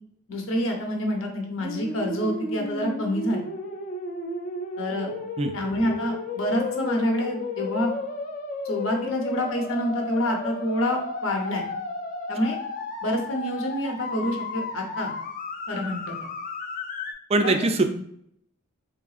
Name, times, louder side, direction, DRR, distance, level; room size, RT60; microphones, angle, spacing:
voice 1, 0.3-3.4 4.8-5.1 5.5-7.9 8.6-11.6 12.3-12.6 13.0-15.1 15.7-16.1 17.4-17.7, equal, 65° left, 1 dB, 0.8 m, -27 dB
sound 1, 1.6-17.1, left 3 dB, 40° left, 0.4 m, -33 dB
voice 2, 17.3-17.8, right 2 dB, 30° right, 6 dB, 0.3 m, -22 dB
3.8 x 3.5 x 2.4 m, 0.70 s
head